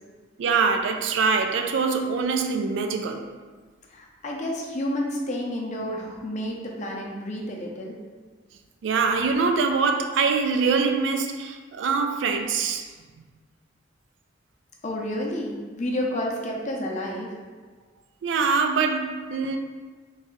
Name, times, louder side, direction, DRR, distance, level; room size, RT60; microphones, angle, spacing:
voice 1, 0.4-3.2 8.8-12.8 18.2-19.6, right 5 dB, 70° right, 0.3 m, -24 dB
voice 2, 3.9-8.0 14.8-17.3, left 1 dB, 40° left, 0.5 m, -30 dB
3.1 x 2.6 x 3.8 m
head